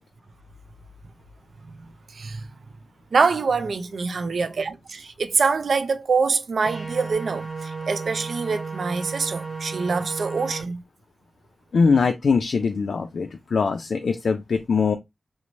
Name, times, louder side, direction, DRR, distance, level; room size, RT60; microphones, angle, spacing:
voice 1, 2.1-2.5 3.1-10.8, right 4 dB, 75° right, 0.4 m, -25 dB
sound 1, 6.6-10.6, right 4 dB, 45° right, 1.4 m, -33 dB
voice 2, 11.7-15.0, left 5 dB, 85° left, 0.3 m, -22 dB
3.0 x 2.0 x 2.6 m
wide cardioid pair, 100°, 0 cm